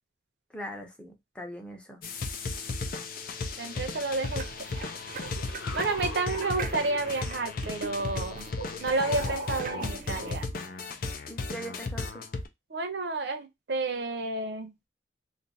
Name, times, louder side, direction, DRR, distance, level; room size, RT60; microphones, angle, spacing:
voice 1, 0.5-2.0 11.3-12.2, equal, 5° left, 0.7 m, -41 dB
sound 1, 2.0-12.5, left 3 dB, 50° left, 0.5 m, -35 dB
voice 2, 3.6-4.5 5.7-8.5 8.8-10.5 12.7-14.7, right 3 dB, 65° right, 0.7 m, -30 dB
sound 2, 3.9-10.5, right 5 dB, 45° right, 0.3 m, -43 dB
sound 3, 4.7-7.5 8.1-10.8, left 1 dB, 90° left, 1.2 m, -42 dB
2.7 x 2.5 x 3.9 m
head